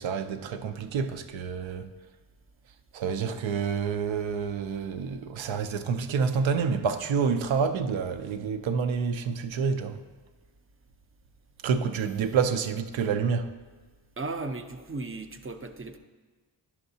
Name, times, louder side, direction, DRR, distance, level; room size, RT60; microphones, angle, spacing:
voice 1, 0.0-1.9 2.9-10.0 11.6-13.5, right 6 dB, 80° right, 0.6 m, -28 dB
voice 2, 14.2-16.0, right 3 dB, 30° right, 0.5 m, -36 dB
10.5 x 5.7 x 2.7 m
cardioid pair, 45°, 45 cm